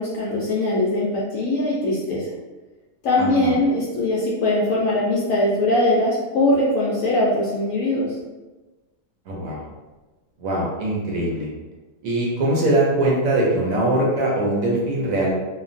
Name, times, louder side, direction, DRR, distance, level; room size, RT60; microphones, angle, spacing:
voice 1, 0.0-2.3 3.0-8.1, left 1 dB, 70° left, -5 dB, 0.8 m, -21 dB
voice 2, 3.2-3.5 9.3-9.6 10.4-11.5 12.0-15.3, right 1 dB, 65° right, -4 dB, 1.0 m, -22 dB
3.1 x 2.2 x 2.4 m, 1.2 s
omnidirectional pair, 1.7 m